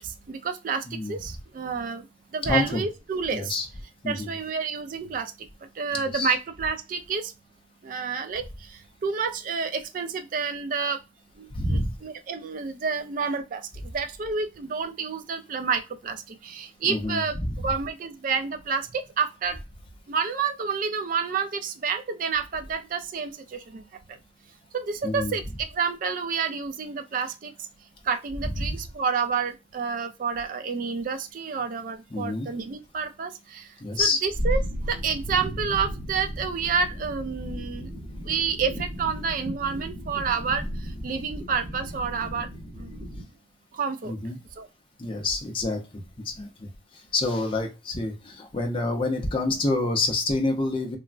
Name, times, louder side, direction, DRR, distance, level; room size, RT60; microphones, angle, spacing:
voice 1, 0.3-2.0 2.3-3.6 4.1-5.3 5.8-7.3 7.8-8.4 9.0-11.0 11.7-13.6 13.9-17.4 17.6-19.6 20.1-23.8 24.7-25.4 25.7-27.5 28.1-33.6 34.0-34.6 34.9-37.9 38.2-40.6 41.0-42.5 42.8-42.9 43.8-44.1 44.6-44.7, right 5 dB, 45° right, 0.3 m, -29 dB
voice 2, 0.9-1.2 2.4-2.8 3.3-3.7 4.0-4.3 5.9-6.3 11.5-12.0 16.8-17.7 25.0-25.4 28.6-28.8 32.1-32.5 33.8-34.2 44.0-44.4 45.0-51.0, left 2 dB, 25° left, 0.5 m, -28 dB
sound 1, 34.3-43.2, equal, 5° right, 0.9 m, -34 dB
3.2 x 2.1 x 2.4 m
head